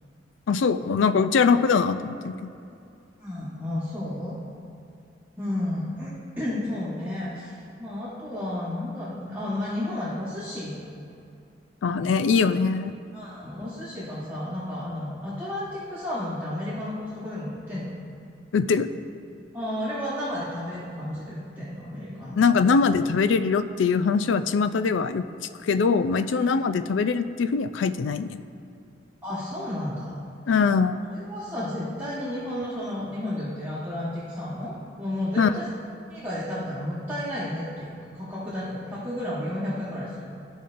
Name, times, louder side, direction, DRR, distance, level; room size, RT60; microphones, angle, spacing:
voice 1, 0.5-2.3 11.8-12.9 18.5-18.9 22.4-25.2 25.6-28.4 30.5-31.0 35.4-35.5, left 5 dB, 85° left, 11 dB, 0.4 m, -22 dB
voice 2, 3.2-4.4 5.4-6.1 6.4-10.8 13.1-17.9 19.5-22.4 29.2-30.2 30.9-35.6 36.1-40.2, left 1 dB, 10° right, -11 dB, 1.2 m, -32 dB
14.0 x 5.3 x 2.5 m, 2.6 s
head